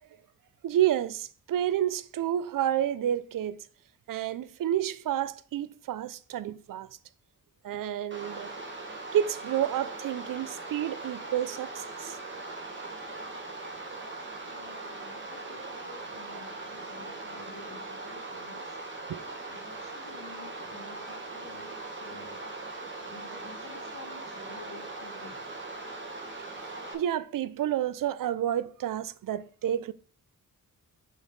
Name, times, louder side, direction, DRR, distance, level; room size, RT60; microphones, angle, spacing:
voice 1, 0.6-3.6 4.1-6.9 7.6-8.5 9.1-12.2 19.1-19.3 26.9-29.9, right 11 dB, 75° right, 0.5 m, -30 dB
sound 1, 8.1-26.9, right 2 dB, 35° right, 1.5 m, -40 dB
voice 2, 14.4-18.8 19.5-22.5 23.0-25.5, left 4 dB, 75° left, 1.4 m, -51 dB
6.3 x 5.3 x 3.9 m
wide cardioid pair, 125°, 33 cm